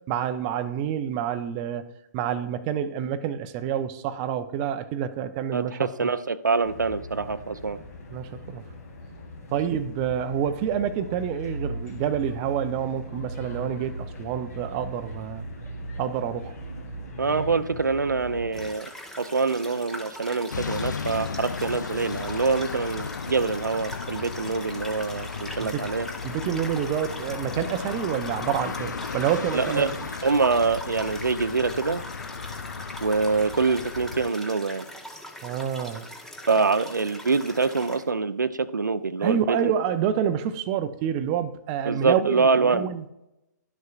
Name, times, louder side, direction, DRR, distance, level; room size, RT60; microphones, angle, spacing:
voice 1, 0.1-6.1 8.1-8.6 9.5-15.5 16.0-16.6 25.6-25.9 26.2-29.9 35.4-36.1 39.2-43.0, right 9 dB, 25° right, 0.5 m, -28 dB
voice 2, 5.5-7.8 17.2-18.9 19.2-26.1 29.5-29.9 30.2-32.0 33.0-34.9 36.5-39.7 41.9-42.9, right 4 dB, 85° right, 0.5 m, -25 dB
sound 1, 6.6-18.7, equal, 55° left, 2.0 m, -38 dB
sound 2, 18.5-38.1, left 1 dB, 5° left, 0.7 m, -41 dB
sound 3, 20.5-34.3, left 5 dB, 80° left, 0.4 m, -35 dB
11.5 x 6.5 x 2.4 m
figure-of-eight pair, 130°, 10 cm